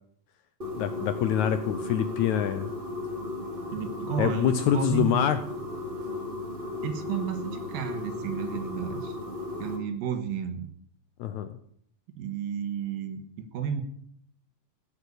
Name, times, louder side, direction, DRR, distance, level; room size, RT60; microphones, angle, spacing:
sound 1, 0.6-9.8, left 2 dB, 20° right, 1.9 m, -35 dB
voice 1, 0.8-2.7 4.2-5.4 11.2-11.5, left 10 dB, 80° left, 10 dB, 1.7 m, -25 dB
voice 2, 3.7-5.2 6.8-9.2 9.6-10.7 12.2-13.8, right 8 dB, 75° right, 8 dB, 2.9 m, -32 dB
16.0 x 8.3 x 6.9 m, 0.67 s
omnidirectional pair, 4.2 m